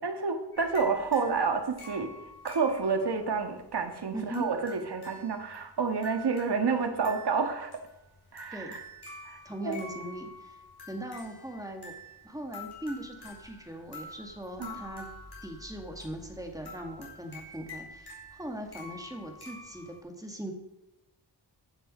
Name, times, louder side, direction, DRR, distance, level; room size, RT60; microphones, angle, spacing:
voice 1, 0.0-2.1 2.4-7.7 8.3-8.8 9.2-9.8 14.6-14.8, right 5 dB, 70° right, 6 dB, 1.6 m, -29 dB
sound 1, 0.5-20.0, left 2 dB, 65° left, 4.4 m, -48 dB
voice 2, 4.1-4.5 8.5-8.8 9.4-10.6 10.9-11.9 12.2-15.1 15.4-20.5, right 1 dB, 10° right, 3 dB, 2.0 m, -40 dB
14.5 x 6.5 x 5.4 m, 0.92 s
wide cardioid pair, 95°, 41 cm